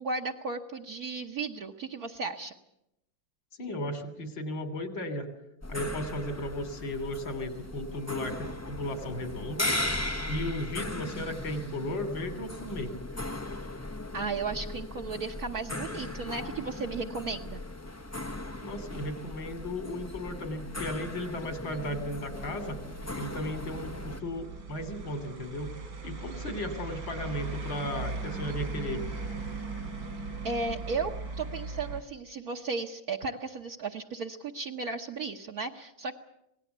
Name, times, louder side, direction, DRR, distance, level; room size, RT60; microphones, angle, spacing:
voice 1, 0.0-2.5 14.1-17.6 30.4-31.1 31.4-36.1, right 4 dB, 55° right, 0 dB, 1.5 m, -35 dB
voice 2, 3.6-5.3 5.7-9.7 10.3-12.9 18.6-22.8 23.2-25.7 26.0-29.0, left 1 dB, 80° left, 8 dB, 3.9 m, -35 dB
sound 1, 5.6-24.2, left 1 dB, 20° left, 0.4 m, -38 dB
sound 2, 21.3-32.0, right 3 dB, 70° right, 4.1 m, -39 dB
26.5 x 18.5 x 8.0 m, 0.83 s
omnidirectional pair, 2.0 m